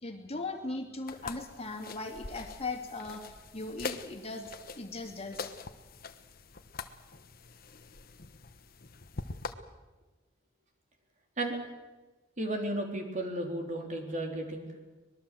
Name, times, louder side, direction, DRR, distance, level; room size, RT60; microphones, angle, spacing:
voice 1, 0.0-5.5, left 2 dB, 35° left, 3 dB, 2.5 m, -39 dB
sound 1, 1.1-9.5, left 4 dB, 50° left, 1.2 m, -44 dB
voice 2, 12.4-14.6, right 1 dB, 40° right, 3 dB, 3.8 m, -34 dB
25.0 x 20.5 x 7.7 m, 1.2 s
head